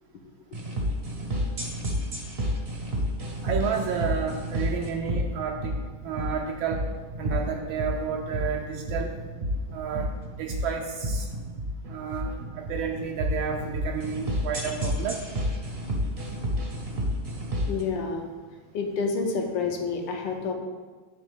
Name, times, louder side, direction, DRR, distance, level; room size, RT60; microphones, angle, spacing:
sound 1, 0.5-17.8, equal, 45° right, 0.7 m, -30 dB
voice 1, 3.4-5.7 6.0-6.8 7.2-9.1 9.7-10.1 10.4-11.3 11.9-12.3 12.6-15.2, right 7 dB, 80° right, 2 dB, 1.3 m, -31 dB
voice 2, 17.7-18.3 18.7-20.5, left 4 dB, 70° left, 3 dB, 1.3 m, -29 dB
9.6 x 3.6 x 3.5 m, 1.4 s
omnidirectional pair, 2.2 m